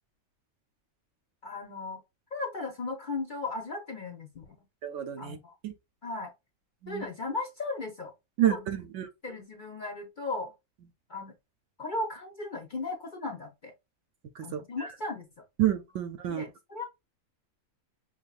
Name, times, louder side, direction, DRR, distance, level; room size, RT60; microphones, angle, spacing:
voice 1, 1.4-2.0 2.3-4.5 5.2-5.5 6.0-6.3 6.9-8.1 8.5-8.7 9.2-10.5 11.1-11.3 11.8-13.7 14.4-15.3 16.2-16.8, left 3 dB, 50° left, 0.6 m, -36 dB
voice 2, 4.8-5.4 5.6-5.7 6.8-7.1 8.4-9.1 14.4-14.6 15.6-16.4, right 12 dB, 65° right, 0.8 m, -29 dB
5.7 x 2.7 x 2.3 m
omnidirectional pair, 1.5 m